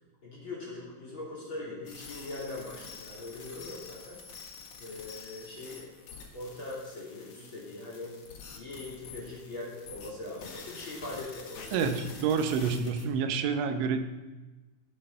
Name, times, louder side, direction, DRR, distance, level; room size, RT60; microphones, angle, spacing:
voice 1, 0.2-4.2 4.8-5.9 6.3-8.1 8.5-11.9, left 2 dB, 30° left, -5 dB, 3.5 m, -41 dB
sound 1, 1.9-13.1, left 5 dB, 70° left, 1.4 m, -47 dB
voice 2, 11.7-14.0, right 6 dB, 85° right, 7 dB, 3.4 m, -28 dB
17.0 x 7.9 x 5.5 m, 1.2 s
omnidirectional pair, 5.2 m